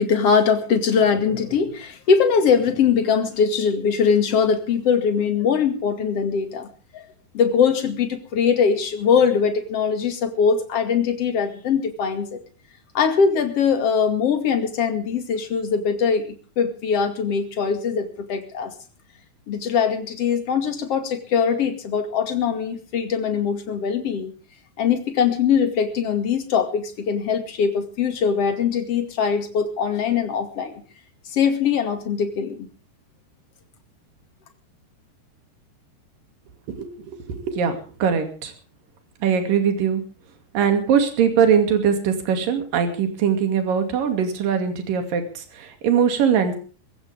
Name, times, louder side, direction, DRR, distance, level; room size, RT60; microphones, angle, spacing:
voice 1, 0.0-7.1 7.3-12.4 12.9-18.7 19.5-24.3 24.8-30.8 31.3-32.7, left 6 dB, 45° left, 6 dB, 2.6 m, -21 dB
voice 2, 36.7-38.5 39.2-40.0 40.5-46.5, right 7 dB, 60° right, 6 dB, 3.9 m, -21 dB
22.5 x 15.5 x 3.5 m, 0.39 s
omnidirectional pair, 4.8 m